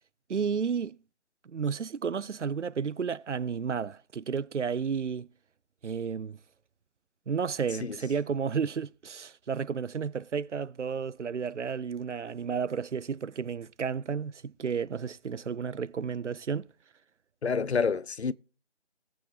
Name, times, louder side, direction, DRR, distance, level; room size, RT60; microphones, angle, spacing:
voice 1, 0.3-1.0 1.5-5.3 5.8-6.4 7.3-16.7, right 6 dB, 85° right, 0.5 m, -32 dB
voice 2, 17.4-18.3, left 5 dB, 65° left, 0.6 m, -28 dB
20.0 x 7.7 x 2.8 m
figure-of-eight pair, 160°, 35 cm